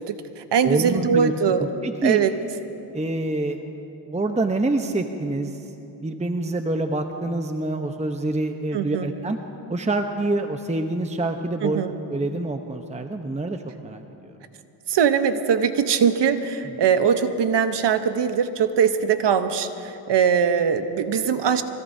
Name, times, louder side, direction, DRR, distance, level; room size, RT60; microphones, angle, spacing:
voice 1, 0.0-1.7 2.0-2.3 8.7-9.1 11.6-11.9 14.9-21.6, right 7 dB, 60° right, 10 dB, 1.0 m, -21 dB
voice 2, 0.6-1.3 1.6-2.2 2.9-3.6 4.1-5.6 6.0-9.4 9.7-11.8 12.1-14.3 16.6-16.7, right 2 dB, 15° right, 6 dB, 0.9 m, -26 dB
25.0 x 17.0 x 2.8 m, 2.8 s
supercardioid pair, 60°, 48 cm